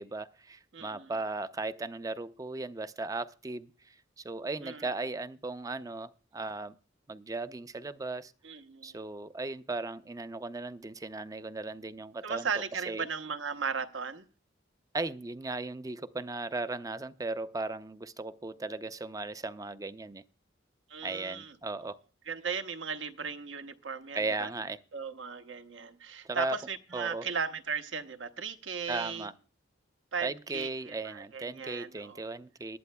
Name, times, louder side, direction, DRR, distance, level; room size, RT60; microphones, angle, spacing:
voice 1, 0.0-6.8 7.1-8.3 8.8-12.5 12.9-13.1 14.9-20.2 21.0-22.0 24.1-24.8 26.2-26.6 26.9-27.3 28.9-29.3 30.2-32.8, right 3 dB, 20° right, 0.4 m, -37 dB
voice 2, 0.7-1.1 4.6-4.9 8.4-9.0 12.2-14.2 20.9-21.6 22.3-24.5 24.9-29.3 30.1-32.2, right 6 dB, 80° right, 1.0 m, -37 dB
19.5 x 11.5 x 2.2 m
head